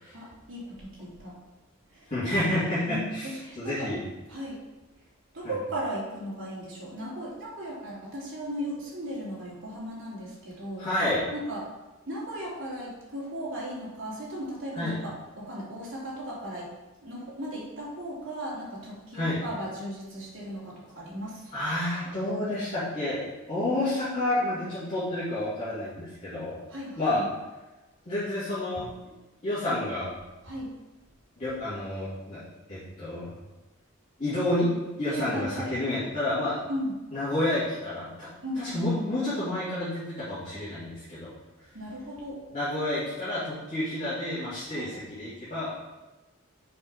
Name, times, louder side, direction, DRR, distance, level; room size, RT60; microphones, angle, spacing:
voice 1, 0.1-1.3 1.9-2.1 2.9-3.9 4.3-4.6 5.3-10.9 11.3-11.7 12.1-16.7 17.0-21.7 26.7-27.3 30.4-30.7 35.1-35.8 36.7-37.0 38.4-39.1 41.7-42.4 44.7-44.9, equal, 70° right, -6 dB, 2.8 m, -36 dB
voice 2, 2.1-4.0 5.4-5.5 10.8-11.2 14.8-15.0 19.1-19.4 21.5-26.6 27.0-27.2 28.1-28.9 29.4-30.1 31.4-32.4 32.7-33.3 34.2-34.7 35.0-36.6 37.1-38.3 38.5-41.3 42.5-45.7, left 1 dB, 35° left, -14 dB, 2.9 m, -29 dB
7.1 x 5.8 x 4.7 m, 1.1 s
head